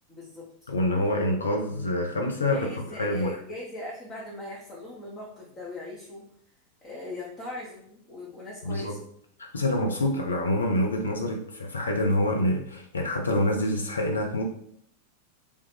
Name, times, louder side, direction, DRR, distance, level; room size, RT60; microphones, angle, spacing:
voice 1, 0.1-0.7 2.5-6.2 6.8-9.0, left 2 dB, 20° left, -6 dB, 0.8 m, -39 dB
voice 2, 0.7-2.7 3.0-3.4 8.6-9.0 9.5-14.4, left 1 dB, 75° left, 2 dB, 0.4 m, -26 dB
3.2 x 2.4 x 3.3 m, 0.67 s
figure-of-eight pair, 90°, 0 cm